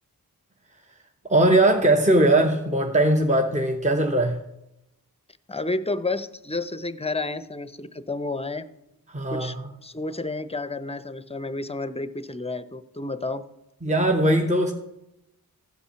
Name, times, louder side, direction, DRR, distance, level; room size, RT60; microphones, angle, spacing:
voice 1, 1.3-4.4 9.1-9.6 13.8-14.7, right 1 dB, 20° right, 3 dB, 0.9 m, -20 dB
voice 2, 5.5-8.7 9.3-9.6 9.8-13.4, left 2 dB, 15° left, 12 dB, 0.6 m, -30 dB
15.0 x 5.5 x 5.7 m, 0.90 s
cardioid pair, 50°, 37 cm